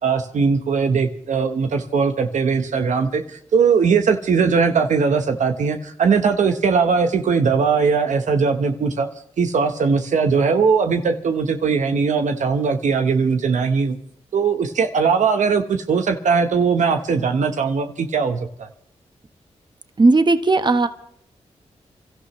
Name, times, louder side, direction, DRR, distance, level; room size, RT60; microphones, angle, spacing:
voice 1, 0.0-9.1 9.4-14.0 14.3-18.7, right 5 dB, 80° right, 6 dB, 1.2 m, -19 dB
voice 2, 20.0-20.9, right 3 dB, 35° right, 9 dB, 1.3 m, -15 dB
28.0 x 13.5 x 3.2 m, 0.64 s
cardioid pair, 50°, 12 cm